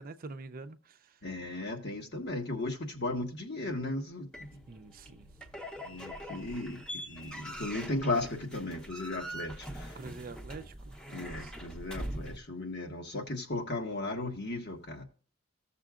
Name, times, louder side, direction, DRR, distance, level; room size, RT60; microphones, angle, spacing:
voice 1, 0.0-1.1 4.7-5.3 9.9-11.6, right 3 dB, 45° right, 0.6 m, -46 dB
voice 2, 1.2-4.5 5.8-10.0 11.1-15.0, left 2 dB, 55° left, 1.6 m, -36 dB
sound 1, 4.3-12.4, equal, 5° left, 0.9 m, -43 dB
15.0 x 6.8 x 2.5 m
head